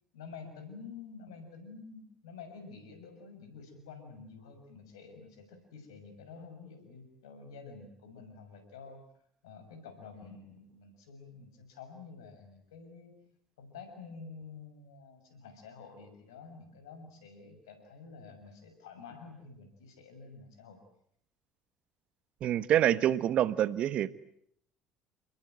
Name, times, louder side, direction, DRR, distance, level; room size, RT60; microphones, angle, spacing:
voice 1, 0.1-9.0 9.4-13.2 13.6-20.8, left 5 dB, 80° left, 8 dB, 6.3 m, -49 dB
voice 2, 22.4-24.1, right 11 dB, 55° right, 16 dB, 1.3 m, -26 dB
29.0 x 21.5 x 9.3 m, 0.69 s
hypercardioid pair, 60°, 2 cm